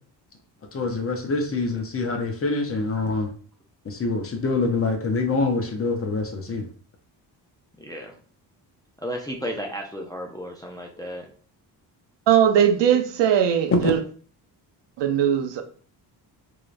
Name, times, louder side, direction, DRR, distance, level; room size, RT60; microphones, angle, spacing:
voice 1, 0.7-3.3 3.8-6.6 13.8-13.9, left 3 dB, 30° left, 4 dB, 0.8 m, -25 dB
voice 2, 7.8-8.2 9.0-11.3, equal, 10° left, 0 dB, 0.4 m, -33 dB
voice 3, 12.3-14.0 15.0-15.6, right 9 dB, 75° right, 7 dB, 0.7 m, -19 dB
3.7 x 3.3 x 2.5 m, 0.43 s
cardioid pair, 125°, 44 cm